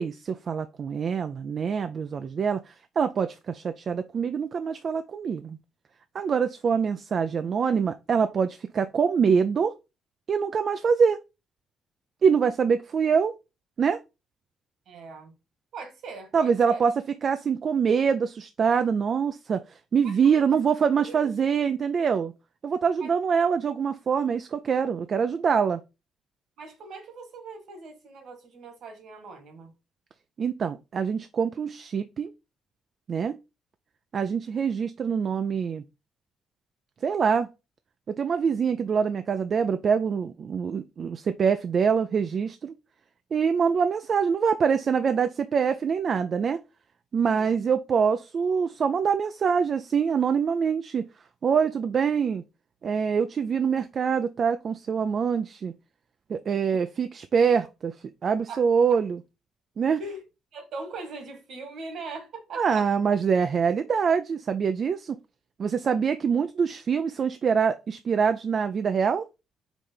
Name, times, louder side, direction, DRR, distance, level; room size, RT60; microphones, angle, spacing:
voice 1, 0.0-5.6 6.1-9.7 10.3-11.2 12.2-13.4 13.8-14.0 16.3-22.3 22.6-25.8 30.4-32.3 33.1-33.4 34.1-35.8 37.0-37.5 38.1-42.7 43.3-46.6 47.1-51.1 51.4-52.4 52.8-55.7 56.3-58.0 58.2-59.2 59.8-60.0 62.6-65.2 65.6-69.3, right 6 dB, 50° right, 0.5 m, -25 dB
voice 2, 14.9-15.3 15.7-16.8 20.0-20.4 20.9-21.3 23.0-23.1 26.6-29.7 47.2-47.6 58.5-58.6 60.0-60.2 60.5-62.9 65.8-66.0, right 3 dB, 70° right, 1.9 m, -41 dB
5.1 x 3.3 x 5.6 m
cardioid pair, 90°, 0 cm